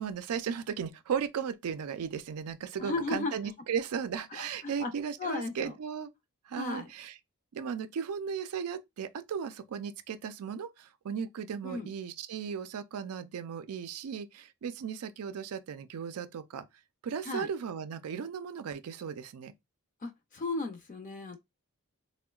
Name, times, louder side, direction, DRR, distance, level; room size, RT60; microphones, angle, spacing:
voice 1, 0.0-6.1 6.5-7.2 7.5-16.6 17.0-19.5, right 7 dB, 90° right, 0.4 m, -36 dB
voice 2, 2.8-3.3 4.3-4.9 5.2-5.7 6.6-6.9 11.6-11.9 17.2-17.5 20.0-21.4, left 3 dB, 35° left, 0.4 m, -35 dB
3.7 x 2.1 x 2.2 m
head